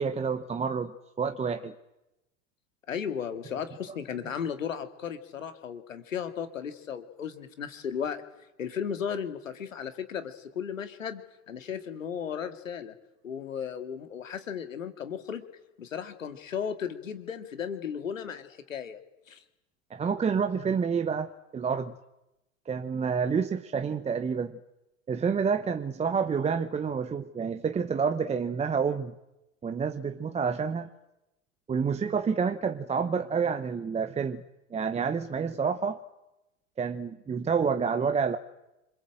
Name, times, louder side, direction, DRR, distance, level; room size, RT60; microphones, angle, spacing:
voice 1, 0.0-1.7 19.9-21.9 22.7-24.5 25.1-29.1 29.6-30.9 31.7-34.4 34.7-36.0 36.8-38.4, right 6 dB, 15° right, 9 dB, 0.9 m, -28 dB
voice 2, 2.9-8.2 8.6-13.0 13.2-15.5 15.8-19.0 19.3-19.4, left 7 dB, 80° left, 9 dB, 2.1 m, -35 dB
26.5 x 21.0 x 7.8 m, 0.95 s
hypercardioid pair, 95°, 39 cm